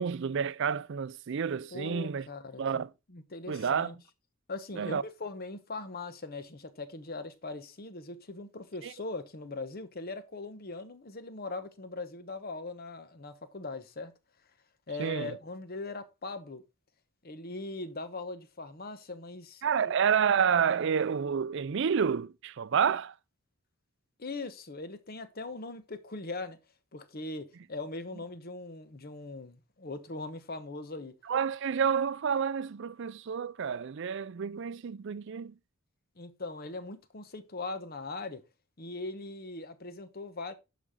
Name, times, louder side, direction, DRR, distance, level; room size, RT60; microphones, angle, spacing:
voice 1, 0.0-2.3 2.6-2.9 3.5-3.9 4.8-5.0 8.8-8.9 15.0-15.3 19.6-23.1 31.3-35.5, right 7 dB, 60° right, 0.4 m, -29 dB
voice 2, 1.7-3.9 4.5-14.1 14.9-16.6 17.2-19.9 24.2-26.6 26.9-31.1 36.2-38.4 38.8-40.5, left 3 dB, 45° left, 1.0 m, -40 dB
11.0 x 5.2 x 3.7 m
head